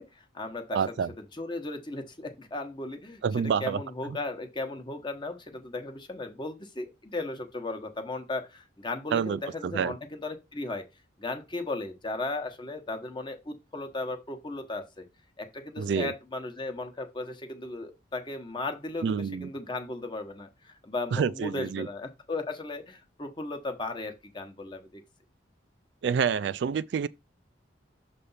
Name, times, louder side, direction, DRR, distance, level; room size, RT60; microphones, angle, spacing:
voice 1, 0.0-10.9 11.2-15.1 15.4-25.0, left 2 dB, 25° left, 1.0 m, -36 dB
voice 2, 0.7-1.1 3.2-3.8 4.1-4.2 9.1-9.9 15.8-16.1 19.0-19.5 21.1-21.9 26.0-27.1, right 6 dB, 60° right, 0.3 m, -28 dB
6.8 x 3.3 x 5.5 m
head